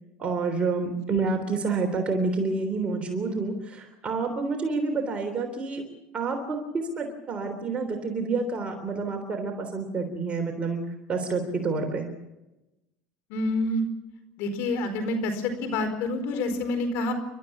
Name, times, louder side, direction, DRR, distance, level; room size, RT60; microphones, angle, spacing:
voice 1, 0.2-5.8 6.1-10.8 11.1-12.1, right 4 dB, 30° right, 3 dB, 3.5 m, -28 dB
voice 2, 13.3-13.8 14.4-17.1, left 2 dB, 65° left, 8 dB, 4.5 m, -27 dB
29.5 x 13.0 x 7.2 m, 1.0 s
supercardioid pair, 115°, 4 cm